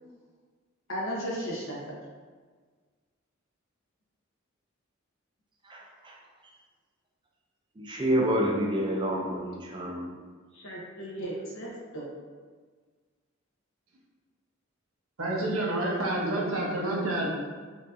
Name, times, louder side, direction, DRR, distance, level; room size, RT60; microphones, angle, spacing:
voice 1, 0.9-1.8 8.4-8.5 10.5-12.0, equal, 70° left, -4 dB, 1.0 m, -35 dB
voice 2, 5.6-6.2 7.8-10.2, equal, 20° right, -2 dB, 0.4 m, -28 dB
voice 3, 15.2-17.3, right 1 dB, 75° right, -3 dB, 0.8 m, -28 dB
4.5 x 2.6 x 2.6 m, 1.5 s
head